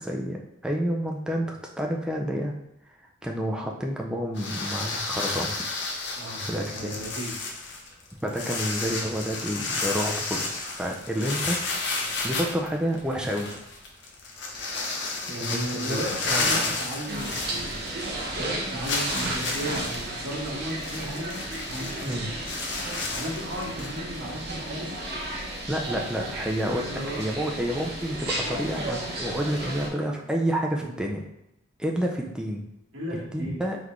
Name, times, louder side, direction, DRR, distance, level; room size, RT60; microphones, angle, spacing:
voice 1, 0.0-2.5 3.2-5.6 6.5-7.0 8.2-11.6 12.2-13.5 15.4-16.0 16.3-16.7 22.1-22.3 25.7-31.2 31.8-32.7 33.1-33.8, equal, 5° right, 0 dB, 0.4 m, -29 dB
sound 1, 4.4-18.1 18.4-18.5 18.8-24.0, left 3 dB, 60° left, 0.7 m, -32 dB
voice 2, 6.1-7.3 15.3-22.2 23.1-24.9 26.6-27.2 32.9-33.6, right 1 dB, 80° right, -4 dB, 1.4 m, -35 dB
sound 2, 17.1-29.9, right 1 dB, 50° right, 0.9 m, -33 dB
3.9 x 3.4 x 3.1 m, 0.87 s
head